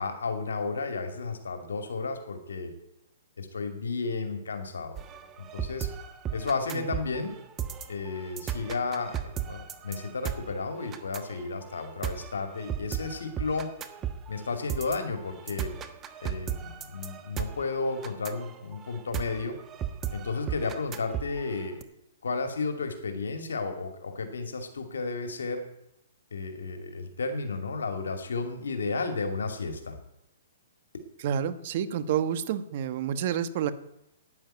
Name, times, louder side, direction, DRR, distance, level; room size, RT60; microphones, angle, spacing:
voice 1, 0.0-2.7 3.4-5.0 5.5-5.9 6.3-7.3 7.9-13.7 14.3-15.7 16.2-19.6 20.1-21.8 22.2-25.6 26.3-30.0, left 4 dB, 90° left, 6 dB, 2.5 m, -33 dB
sound 1, 5.0-21.8, right 9 dB, 20° right, 1.2 m, -36 dB
voice 2, 31.2-33.7, right 9 dB, 50° right, 13 dB, 1.3 m, -29 dB
11.0 x 9.9 x 9.1 m, 0.83 s
hypercardioid pair, 145°, 0 cm